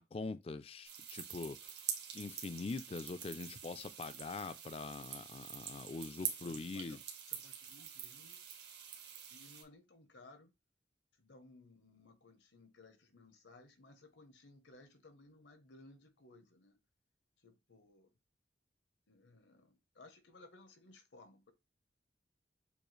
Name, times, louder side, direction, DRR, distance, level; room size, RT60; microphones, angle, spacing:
voice 1, 0.0-1.6 2.1-7.0, left 3 dB, 30° left, 0.3 m, -43 dB
sound 1, 0.8-9.6, right 9 dB, 70° right, 1.1 m, -46 dB
voice 2, 6.2-8.4 9.2-10.5 11.1-16.8 17.4-18.1 19.1-21.5, left 2 dB, 85° left, 1.0 m, -60 dB
6.9 x 2.4 x 3.2 m
head